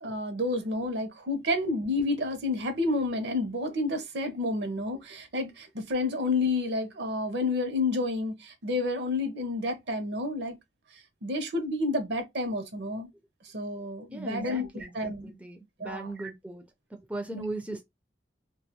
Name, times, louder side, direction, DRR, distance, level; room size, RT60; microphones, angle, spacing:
voice 1, 0.0-10.6 11.2-13.1 13.5-15.3 15.8-16.3 17.3-17.4, left 2 dB, 65° right, 0.6 m, -30 dB
voice 2, 14.1-16.6 16.9-17.8, right 2 dB, 5° right, 0.4 m, -38 dB
2.3 x 2.2 x 2.7 m
head